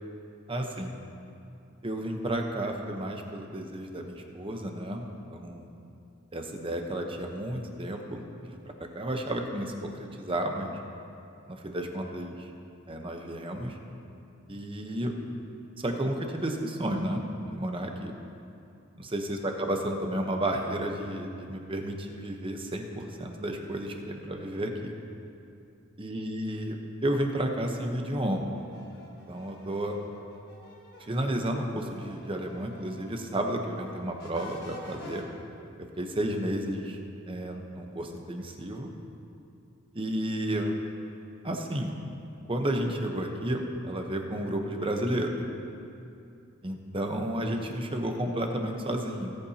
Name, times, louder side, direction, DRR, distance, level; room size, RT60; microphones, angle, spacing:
voice 1, 0.5-1.0 1.8-5.7 6.3-10.8 11.5-12.5 12.9-13.8 14.5-15.1 15.8-17.2 17.5-18.1 19.0-24.9 26.0-28.6 29.1-30.0 31.0-35.2 36.0-37.0 37.3-38.9 39.9-40.7 41.4-41.9 42.5-45.4 46.6-49.4, right 1 dB, 25° right, 3 dB, 0.9 m, -32 dB
sound 1, 28.5-33.2 33.5-35.2, equal, 55° left, 1.5 m, -50 dB
18.5 x 8.5 x 2.9 m, 2.6 s
head